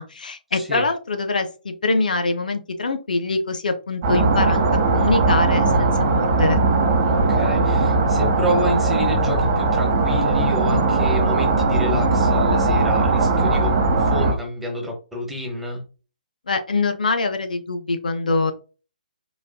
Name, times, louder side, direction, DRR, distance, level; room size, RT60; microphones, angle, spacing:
voice 1, 0.0-4.6 4.9-6.6 16.5-18.5, left 3 dB, 65° left, 7 dB, 0.5 m, -24 dB
voice 2, 0.5-0.9 5.7-6.0 7.0-15.8, left 1 dB, 5° right, -1 dB, 1.0 m, -29 dB
sound 1, 4.0-14.3, right 3 dB, 35° right, 0.9 m, -19 dB
4.0 x 2.5 x 2.2 m, 0.35 s
figure-of-eight pair, 130°, 5 cm